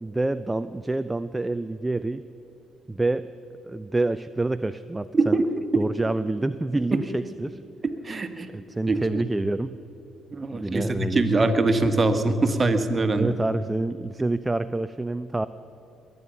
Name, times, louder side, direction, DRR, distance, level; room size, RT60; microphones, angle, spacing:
voice 1, 0.0-2.2 2.9-3.3 3.6-5.4 5.7-7.6 8.5-9.8 10.5-11.5 13.2-15.5, right 2 dB, 15° right, 13 dB, 0.5 m, -27 dB
voice 2, 5.1-5.4 5.7-5.8 7.8-8.5 8.9-9.0 10.3-13.3, right 3 dB, 30° right, 7 dB, 1.6 m, -23 dB
22.0 x 9.4 x 7.0 m, 3.0 s
hypercardioid pair, 50°, 0 cm